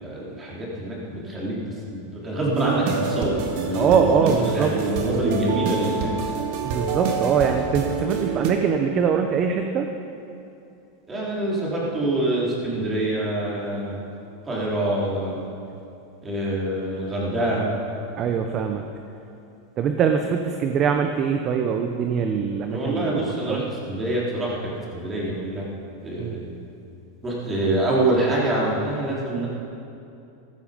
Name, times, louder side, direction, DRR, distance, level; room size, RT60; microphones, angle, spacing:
voice 1, 0.0-1.6 1.9-6.3 11.1-14.0 14.5-15.4 16.2-17.7 22.7-25.6 26.0-26.4 27.2-29.5, right 1 dB, 20° right, -5 dB, 3.8 m, -25 dB
sound 1, 2.6-8.5, right 5 dB, 60° right, 1.8 m, -27 dB
voice 2, 3.7-4.7 6.6-9.9 18.2-18.8 19.8-23.6 26.2-26.4, right 7 dB, 35° right, 5 dB, 0.8 m, -23 dB
14.5 x 13.0 x 5.2 m, 2.7 s
supercardioid pair, 135°, 0 cm